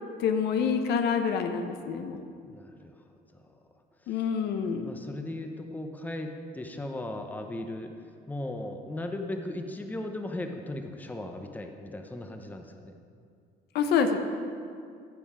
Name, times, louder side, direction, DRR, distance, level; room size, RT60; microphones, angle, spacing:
voice 1, 0.2-2.2 4.1-5.0 13.7-14.2, left 6 dB, 75° left, 7 dB, 0.8 m, -27 dB
voice 2, 2.4-3.0 3.3-3.5 4.0-4.2 4.7-12.9, left 1 dB, 10° left, 5 dB, 0.8 m, -37 dB
15.0 x 5.4 x 5.0 m, 2.3 s
cardioid pair, 110°, 17 cm